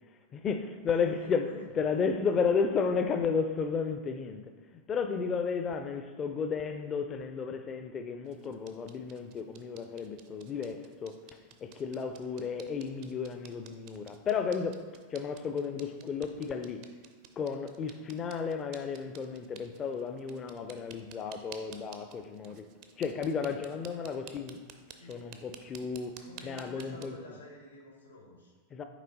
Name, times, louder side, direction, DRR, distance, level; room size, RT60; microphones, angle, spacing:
voice 1, 0.3-4.4 4.7-11.1 11.6-16.8 17.4-22.7 23.0-24.6 25.1-27.1 28.7-28.8, left 5 dB, 25° left, 0.4 m, -33 dB
voice 2, 1.0-1.9 24.9-25.3 26.2-28.5, left 1 dB, 85° left, 1.5 m, -50 dB
sound 1, 8.3-27.0, right 7 dB, 45° right, 0.5 m, -54 dB
6.1 x 4.4 x 4.0 m
figure-of-eight pair, 90°, 0 cm